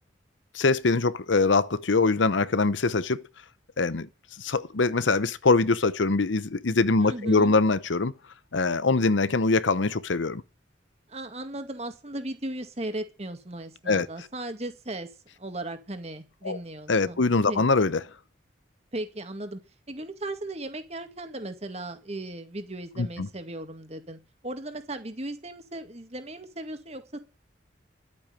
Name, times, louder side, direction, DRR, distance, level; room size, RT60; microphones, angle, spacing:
voice 1, 0.5-3.2 3.8-4.1 4.4-8.1 8.5-10.4 13.9-14.1 16.4-16.6 16.9-18.0 23.0-23.3, left 3 dB, 75° left, 0.8 m, -23 dB
voice 2, 7.0-7.5 11.1-15.1 15.4-17.6 18.9-19.6 19.9-27.2, right 1 dB, 35° right, 2.1 m, -37 dB
12.0 x 8.6 x 9.0 m
head